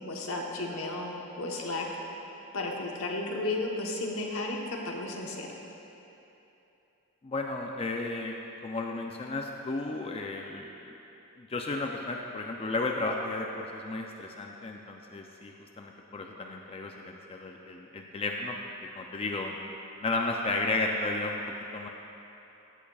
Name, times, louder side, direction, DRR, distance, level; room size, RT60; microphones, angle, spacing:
voice 1, 0.0-1.9 2.5-5.5, left 2 dB, 80° left, 0 dB, 1.1 m, -33 dB
voice 2, 7.2-8.3 8.6-10.9 11.4-18.6 18.9-19.6 20.0-21.4 21.7-21.9, left 2 dB, 25° left, 2 dB, 0.4 m, -33 dB
14.5 x 8.3 x 2.3 m, 3.0 s
head